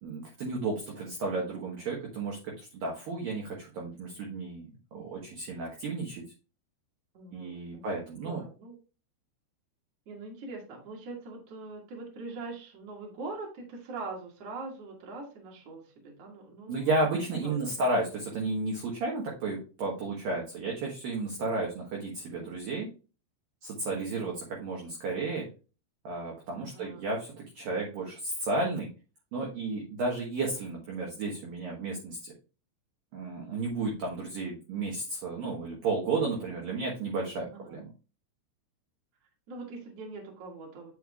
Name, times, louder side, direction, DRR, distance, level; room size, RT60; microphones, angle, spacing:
voice 1, 0.0-6.2 7.3-8.4 16.7-22.9 23.6-25.5 26.0-28.9 29.3-32.3 33.1-37.9, right 3 dB, 65° right, -2 dB, 2.4 m, -33 dB
voice 2, 7.1-8.7 10.1-17.6 23.9-24.3 26.6-27.1 37.5-37.8 39.5-40.9, right 3 dB, 45° right, -1 dB, 2.3 m, -43 dB
8.9 x 6.5 x 2.4 m, 0.34 s
omnidirectional pair, 5.6 m